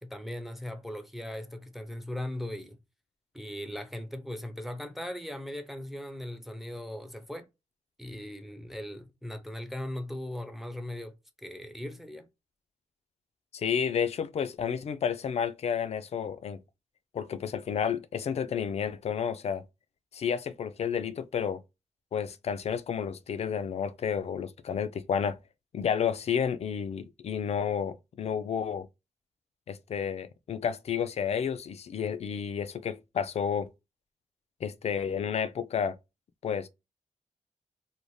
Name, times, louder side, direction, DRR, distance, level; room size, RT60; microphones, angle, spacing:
voice 1, 0.0-2.8 3.3-7.5 8.0-11.1 11.4-12.3, left 1 dB, ahead, 0.4 m, -38 dB
voice 2, 13.5-16.6 17.1-19.6 20.1-21.6 22.1-25.4 25.7-28.9 29.7-33.7 34.6-36.0 36.4-36.7, left 7 dB, 55° left, 0.4 m, -31 dB
2.6 x 2.1 x 3.1 m
wide cardioid pair, 110°, 13 cm